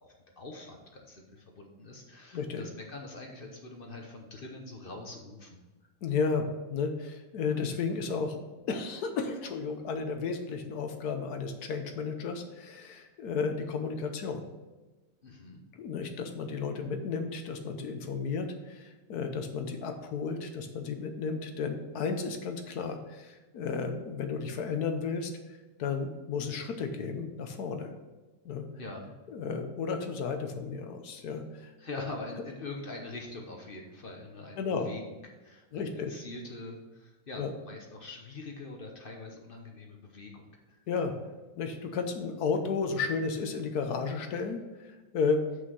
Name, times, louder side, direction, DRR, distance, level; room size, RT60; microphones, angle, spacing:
voice 1, 0.0-5.6 15.2-15.6 28.8-29.1 31.8-40.8, left 2 dB, 40° left, 2 dB, 0.8 m, -44 dB
voice 2, 6.0-8.4 8.7-14.4 15.8-25.3 25.8-27.9 28.4-28.7 29.3-31.4 34.6-34.9 35.7-36.1 37.4-37.5 40.9-41.1 41.6-45.4, left 5 dB, 60° left, 6 dB, 1.2 m, -33 dB
6.3 x 5.6 x 6.1 m, 1.2 s
omnidirectional pair, 2.1 m